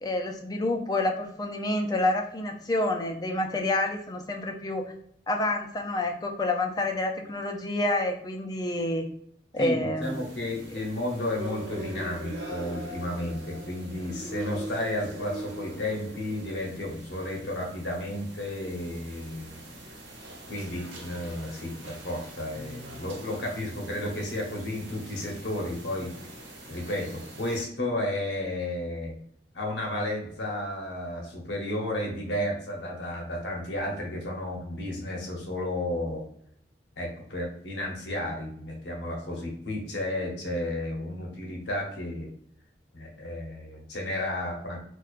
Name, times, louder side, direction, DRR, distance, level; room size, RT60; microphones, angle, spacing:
voice 1, 0.0-4.8 5.3-9.1 9.5-10.1, left 2 dB, 20° left, 4 dB, 0.4 m, -28 dB
voice 2, 9.6-19.6 20.5-26.1 26.7-29.2 29.5-36.2 37.0-42.3 42.9-44.8, left 1 dB, 80° left, 0 dB, 0.9 m, -32 dB
sound 1, 10.0-27.6, equal, 85° right, 1.1 m, -42 dB
4.4 x 2.3 x 2.4 m, 0.65 s
head